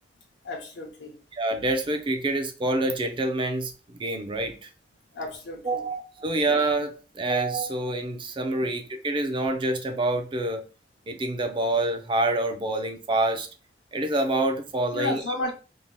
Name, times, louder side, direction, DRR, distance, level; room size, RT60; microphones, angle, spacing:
voice 1, 0.4-1.2 5.1-5.8 14.9-15.5, left 2 dB, 85° left, 0.6 m, -32 dB
voice 2, 1.4-4.7 5.6-10.6 11.1-13.5 13.9-15.2, right 2 dB, 30° right, 0.4 m, -27 dB
2.7 x 2.1 x 3.0 m
head